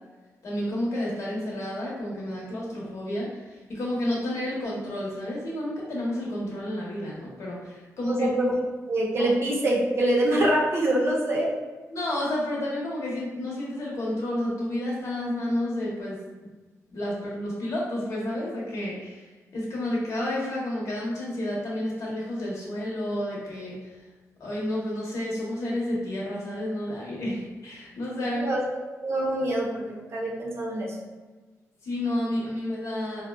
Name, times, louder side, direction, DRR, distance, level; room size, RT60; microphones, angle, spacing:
voice 1, 0.4-8.3 9.2-9.3 11.9-16.2 16.9-19.3 19.5-23.9 24.4-28.4 31.8-33.2, left 1 dB, 60° left, -5 dB, 0.9 m, -30 dB
voice 2, 8.1-8.5 8.9-11.6 28.2-28.6 29.0-31.0, right 1 dB, 50° right, -3 dB, 0.6 m, -25 dB
3.7 x 2.1 x 2.2 m, 1.3 s
wide cardioid pair, 140°, 6 cm